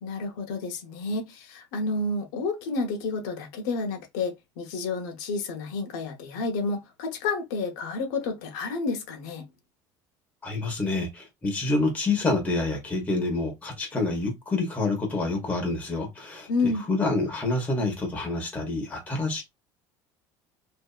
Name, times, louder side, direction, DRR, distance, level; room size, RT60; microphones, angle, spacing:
voice 1, 0.0-9.5 16.5-16.9, left 3 dB, 85° left, 0.8 m, -30 dB
voice 2, 10.4-19.4, left 2 dB, 15° left, 1.0 m, -27 dB
2.7 x 2.5 x 2.3 m
cardioid pair, 150°, 10 cm